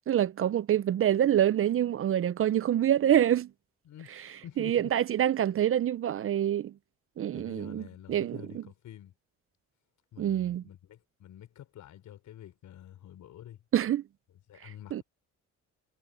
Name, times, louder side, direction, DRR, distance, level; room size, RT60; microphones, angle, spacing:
voice 1, 0.1-3.5 4.6-6.7 7.2-7.8 8.1-8.6 10.2-10.6 13.7-14.0 14.9-15.0, right 11 dB, 45° right, 0.5 m, -26 dB
voice 2, 3.8-4.9 7.3-9.1 10.1-13.6 14.5-15.0, left 11 dB, 75° left, 4.7 m, -48 dB
cardioid pair, 90°, 30 cm